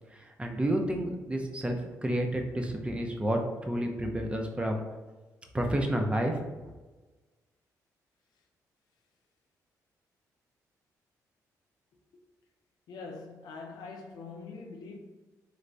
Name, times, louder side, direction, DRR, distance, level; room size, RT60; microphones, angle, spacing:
voice 1, 0.1-1.8 2.0-4.8 5.5-6.4, right 1 dB, 15° right, 0.6 m, -30 dB
voice 2, 12.9-15.0, left 4 dB, 75° left, 0.6 m, -43 dB
3.2 x 3.2 x 2.6 m
cardioid pair, 70°, 7 cm